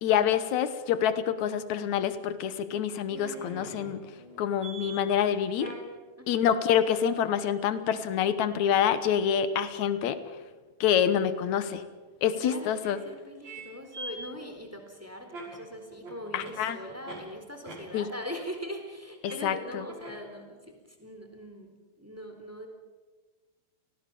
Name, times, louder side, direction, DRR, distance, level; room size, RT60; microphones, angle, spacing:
voice 1, 0.0-4.0 4.4-5.7 6.3-10.2 10.8-11.8 12.2-13.0 16.3-16.8 17.9-18.1 19.2-19.8, left 9 dB, 65° left, 12 dB, 1.9 m, -26 dB
sound 1, 3.1-5.0 5.6-5.8 9.7-9.8 11.3-11.4 12.8-12.9 13.4-13.6 13.9-17.2 17.7-17.8 19.2-19.3 19.9-20.3 20.7-20.8, right 2 dB, 40° right, 7.1 m, -43 dB
voice 2, 6.2-6.5 12.4-21.7 22.0-22.7, equal, 5° right, 4 dB, 3.3 m, -41 dB
30.0 x 19.0 x 7.0 m, 1.3 s
omnidirectional pair, 4.7 m